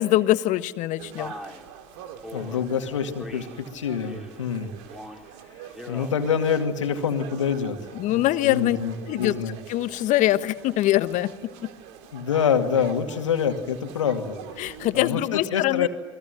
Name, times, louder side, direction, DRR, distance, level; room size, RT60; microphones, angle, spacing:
voice 1, 0.0-1.3 7.9-8.8 9.1-9.3 9.7-11.3 11.6-11.7 14.6-15.9, left 15 dB, 55° left, 12 dB, 1.3 m, -23 dB
sound 1, 1.0-15.1, right 9 dB, 65° right, 2.5 m, -45 dB
Male speech man speaking, 1.2-1.6 2.2-2.6 3.2-3.6 4.0-4.4 4.8-5.3 5.7-6.2, left 1 dB, ahead, 4.2 m, -40 dB
voice 2, 2.3-4.7 5.6-7.8 8.1-9.6 12.1-15.9, left 7 dB, 85° left, 5 dB, 2.3 m, -26 dB
29.5 x 21.5 x 9.3 m, 1.3 s
hypercardioid pair, 75°, 16 cm